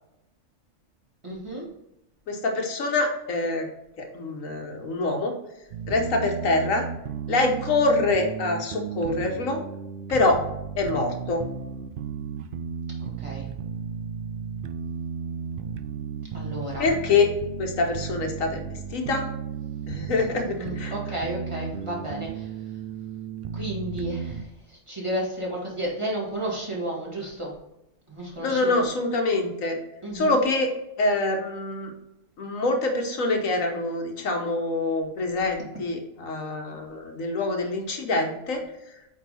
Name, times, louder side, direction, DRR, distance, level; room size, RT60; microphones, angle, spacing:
voice 1, 1.2-1.7 13.2-13.5 16.3-16.9 20.6-22.5 23.5-27.5 28.1-28.9 30.0-30.4, right 1 dB, 20° right, -4 dB, 1.9 m, -32 dB
voice 2, 2.3-3.7 4.0-5.3 5.9-6.9 7.3-9.6 10.1-10.4 10.8-11.4 16.8-17.3 17.6-19.3 19.9-20.9 28.4-29.8 30.1-30.7 31.0-31.9 32.4-38.6, left 3 dB, 75° left, 3 dB, 1.4 m, -25 dB
sound 1, 5.7-24.4, right 7 dB, 75° right, 0.5 m, -34 dB
8.4 x 3.5 x 4.2 m, 0.89 s
omnidirectional pair, 1.4 m